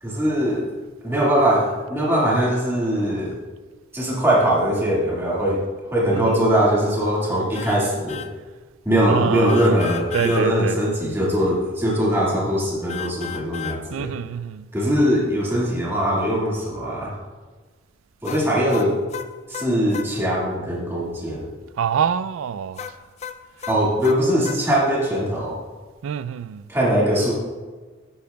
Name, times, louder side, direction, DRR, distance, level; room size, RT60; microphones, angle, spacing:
voice 1, 0.0-0.7 1.0-3.4 3.9-5.6 5.9-8.2 8.8-14.1 14.7-17.2 18.2-19.0 19.5-21.5 23.7-25.6 26.7-27.3, equal, 10° right, 1.9 m, -21 dB
voice 2, 6.1-6.5 9.1-9.6 10.1-10.8 13.9-14.7 21.8-22.9 26.0-26.7, right 7 dB, 85° right, 0.3 m, -26 dB
sound 1, 7.5-7.8 8.1-8.3 9.5-10.4 12.9-13.8 18.2-20.1 22.8-24.6, left 8 dB, 35° left, 0.4 m, -34 dB
12.5 x 8.8 x 2.3 m
head